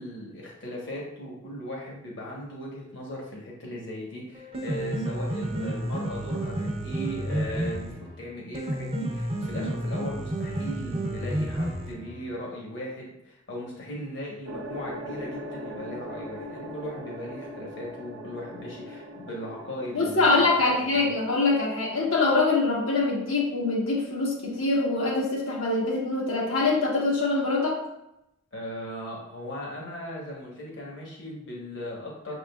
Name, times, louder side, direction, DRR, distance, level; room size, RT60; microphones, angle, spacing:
voice 1, 0.0-7.9 8.2-20.6 21.0-21.1 28.5-32.4, equal, 60° left, -3 dB, 1.1 m, -38 dB
Piano, 4.4-12.3, right 1 dB, 30° right, 0.5 m, -31 dB
sound 1, 14.4-20.7, equal, 80° right, 0.7 m, -40 dB
voice 2, 19.9-27.8, left 3 dB, 85° left, -4 dB, 1.2 m, -24 dB
6.0 x 3.6 x 2.3 m, 0.84 s
head